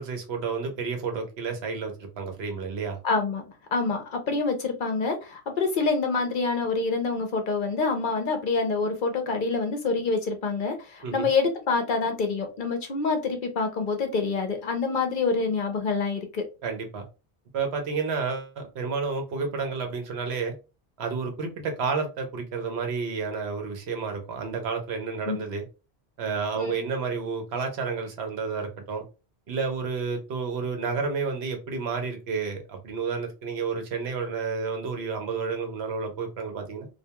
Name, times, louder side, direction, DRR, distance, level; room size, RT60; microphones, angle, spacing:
voice 1, 0.0-3.0 11.0-11.3 16.6-17.0 17.5-20.5 21.0-25.6 26.2-29.0 29.5-36.9, right 5 dB, 75° right, 4 dB, 1.0 m, -30 dB
voice 2, 3.0-16.4 25.3-25.4 26.5-26.8, left 4 dB, 60° left, 6 dB, 0.7 m, -26 dB
2.4 x 2.2 x 2.8 m, 0.30 s
omnidirectional pair, 1.1 m